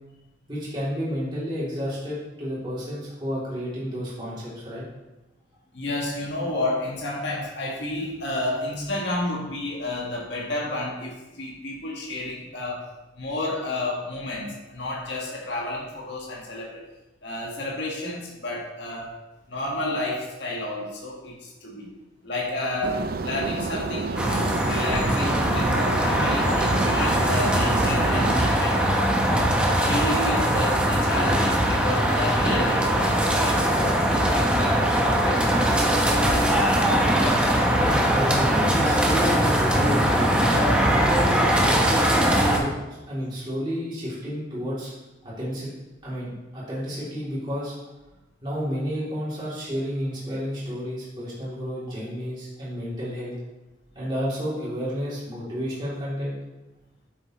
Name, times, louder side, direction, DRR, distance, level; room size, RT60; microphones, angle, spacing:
voice 1, 0.5-4.8 37.7-40.4 40.9-44.9 45.2-45.7 46.0-47.7 48.4-53.3 53.9-56.4, equal, 25° right, -9 dB, 2.9 m, -31 dB
voice 2, 5.7-12.9 13.1-16.8 17.2-19.1 19.5-21.9 22.2-28.8 29.2-29.5 29.8-35.7 36.3-36.7, left 2 dB, 70° left, -3 dB, 1.6 m, -31 dB
sound 1, 22.8-28.5, right 3 dB, 50° right, 0.4 m, -30 dB
sound 2, 24.2-42.6, right 1 dB, 5° right, 0.8 m, -21 dB
8.4 x 7.7 x 3.1 m, 1.1 s
head